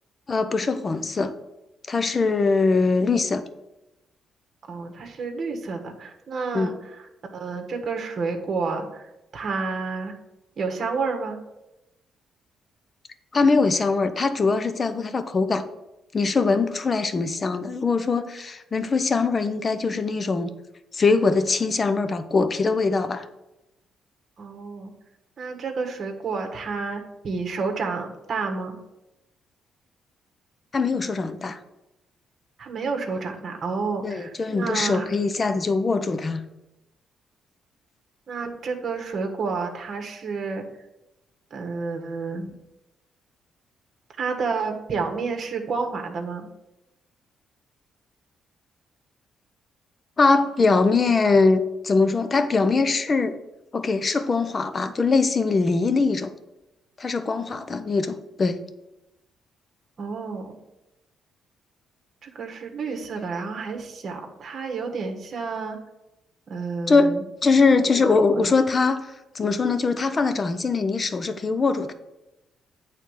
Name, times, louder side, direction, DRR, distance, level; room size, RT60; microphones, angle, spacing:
voice 1, 0.3-1.3 1.9-3.4 6.5-6.7 13.3-15.6 16.1-20.5 20.9-23.2 30.7-31.6 34.0-36.4 50.2-53.4 53.7-56.3 57.0-58.6 66.9-67.1 67.4-69.1 69.3-71.9, left 4 dB, 35° left, 10 dB, 0.7 m, -22 dB
voice 2, 4.6-7.1 7.3-10.2 10.6-11.4 24.4-24.9 25.4-28.8 32.6-35.1 38.3-40.7 41.5-42.5 44.2-46.5 60.0-60.6 62.2-65.8 66.5-67.2 67.9-68.5, right 4 dB, 50° right, 3 dB, 1.4 m, -30 dB
8.9 x 3.6 x 6.6 m, 0.95 s
cardioid pair, 90°, 0 cm